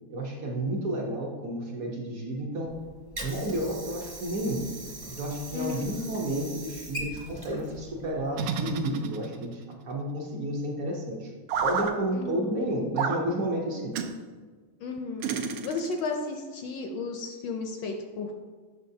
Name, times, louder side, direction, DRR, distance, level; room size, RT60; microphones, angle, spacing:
voice 1, 0.1-2.8 3.2-4.6 5.1-11.3 11.6-13.9, right 1 dB, 60° right, 0 dB, 0.9 m, -31 dB
Water / Sink (filling or washing), 2.7-8.7, right 1 dB, 25° right, 0.5 m, -41 dB
voice 2, 5.5-5.9 12.1-12.5 14.8-18.3, left 4 dB, 75° left, 3 dB, 1.1 m, -34 dB
sound 1, 8.3-9.6 11.5-11.9 13.0-13.2 13.9-14.1 15.2-16.1, right 6 dB, 85° right, 1.5 m, -30 dB
7.8 x 5.9 x 2.7 m, 1.5 s
omnidirectional pair, 2.4 m